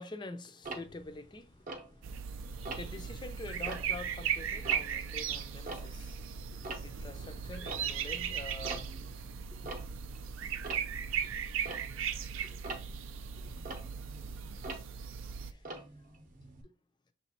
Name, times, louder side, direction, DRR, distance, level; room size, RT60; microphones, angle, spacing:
voice 1, 0.0-9.7 15.5-15.6, left 2 dB, 20° left, 0.4 m, -47 dB
Tick-tock, 0.6-2.3 2.6-3.1 3.5-6.2 6.5-16.6, right 3 dB, 40° right, 0.7 m, -46 dB
sound 1, 2.0-15.5, right 7 dB, 70° right, 0.4 m, -37 dB
5.9 x 3.0 x 2.8 m
head